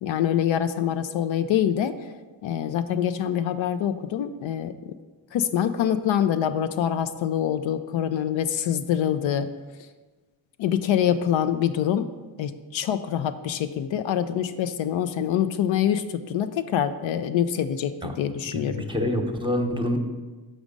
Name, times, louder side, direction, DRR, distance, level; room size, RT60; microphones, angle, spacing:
voice 1, 0.0-1.9 2.4-4.7 5.3-9.5 10.6-12.1 12.4-18.8, left 9 dB, 70° left, 10 dB, 0.6 m, -25 dB
voice 2, 18.4-20.0, left 1 dB, 10° right, 4 dB, 0.9 m, -27 dB
6.3 x 5.0 x 5.2 m, 1.3 s
supercardioid pair, 60°, 48 cm